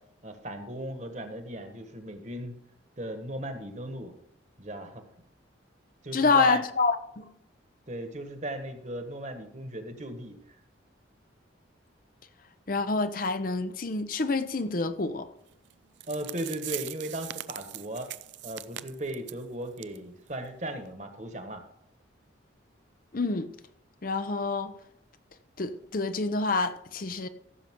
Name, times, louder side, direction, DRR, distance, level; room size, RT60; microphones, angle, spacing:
voice 1, 0.2-2.6 3.0-4.1 4.6-5.0 6.0-6.6 7.9-10.4 16.1-18.1 18.4-21.6, right 1 dB, 40° right, 1.5 m, -37 dB
voice 2, 6.1-7.3 12.7-15.3 23.1-23.5 24.0-24.7 25.6-27.3, left 3 dB, 45° left, 0.6 m, -27 dB
sound 1, 15.7-15.8 16.0-19.4 19.8-20.0 20.3-20.4 20.9-21.0, right 14 dB, 70° right, 0.4 m, -40 dB
15.5 x 7.1 x 3.7 m
head